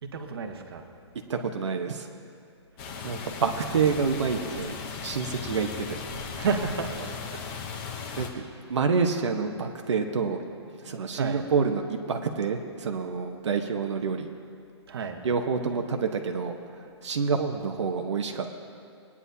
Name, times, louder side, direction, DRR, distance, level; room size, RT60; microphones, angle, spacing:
voice 1, 0.0-0.9 3.6-4.1 6.3-7.4 11.1-11.4 14.9-15.2, right 5 dB, 55° right, 5 dB, 1.1 m, -32 dB
voice 2, 1.3-2.1 3.0-4.7 5.0-5.8 8.2-8.4 8.7-10.4 10.8-14.3 15.2-18.5, right 5 dB, 80° right, 4 dB, 1.0 m, -28 dB
sound 1, 2.8-8.3, left 5 dB, 20° left, 0.7 m, -37 dB
20.0 x 9.7 x 2.7 m, 2.5 s
hypercardioid pair, 170°, 15 cm